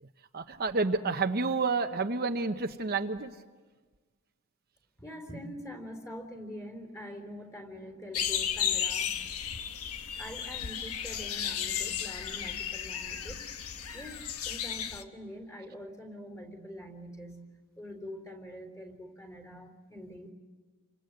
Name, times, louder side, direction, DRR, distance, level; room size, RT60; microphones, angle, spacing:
voice 1, 0.3-3.3, right 4 dB, 45° right, 6 dB, 0.9 m, -29 dB
voice 2, 5.0-9.2 10.2-13.4 13.9-17.5 17.8-20.3, equal, 15° left, 5 dB, 3.9 m, -44 dB
sound 1, 8.1-15.0, left 9 dB, 80° left, 1.3 m, -34 dB
30.0 x 25.0 x 7.9 m, 1.4 s
head